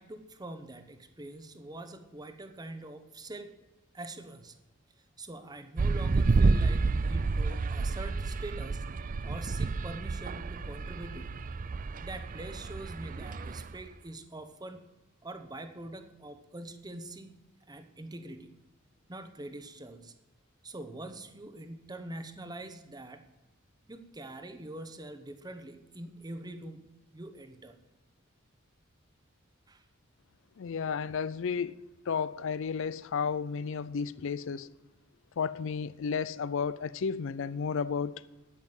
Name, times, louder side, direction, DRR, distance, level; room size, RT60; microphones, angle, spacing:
voice 1, 0.0-3.5 3.9-4.6 5.2-8.9 9.2-11.4 12.0-14.9 15.2-17.3 17.7-18.5 19.1-20.1 20.6-23.3 23.9-27.8 29.7-29.8, right 2 dB, 20° right, 1.0 m, -44 dB
sound 1, 5.8-13.8, right 3 dB, 40° right, 0.4 m, -30 dB
voice 2, 30.6-31.8 32.1-34.7 35.4-38.2, left 6 dB, 65° left, 0.4 m, -32 dB
9.3 x 9.3 x 7.8 m
head